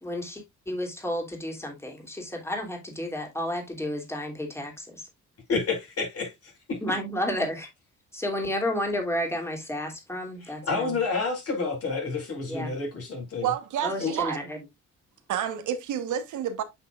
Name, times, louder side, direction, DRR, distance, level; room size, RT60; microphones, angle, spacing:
voice 1, 0.0-5.0 6.8-7.7 8.1-10.9 12.5-12.7 13.8-14.6, left 1 dB, 10° left, 2.9 m, -31 dB
voice 2, 5.5-6.8 10.4-13.5 14.0-14.1, left 4 dB, 50° left, 5.1 m, -29 dB
voice 3, 13.4-14.4 15.3-16.6, right 9 dB, 75° right, 1.2 m, -29 dB
8.2 x 6.1 x 2.4 m
cardioid pair, 90°, 30 cm